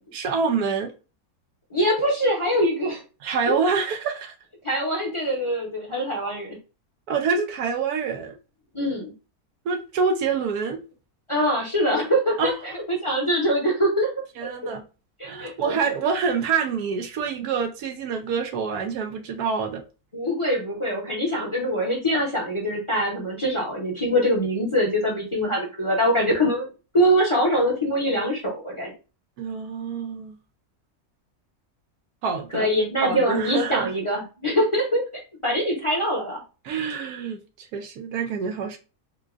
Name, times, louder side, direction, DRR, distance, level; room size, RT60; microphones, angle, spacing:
voice 1, 0.1-0.9 3.2-4.3 7.1-8.4 9.6-10.8 12.4-12.5 14.4-14.8 15.2-19.8 29.4-30.4 32.2-32.7 33.0-33.9 36.6-38.8, right 5 dB, 75° right, 1.1 m, -26 dB
voice 2, 1.7-3.0 3.5-3.6 4.6-6.6 8.7-9.1 11.3-14.1 14.6-14.7 15.2-15.7 20.1-26.7 26.9-28.9 32.5-35.0 35.4-36.4, equal, 25° left, 0.7 m, -23 dB
3.7 x 2.2 x 2.4 m
omnidirectional pair, 1.7 m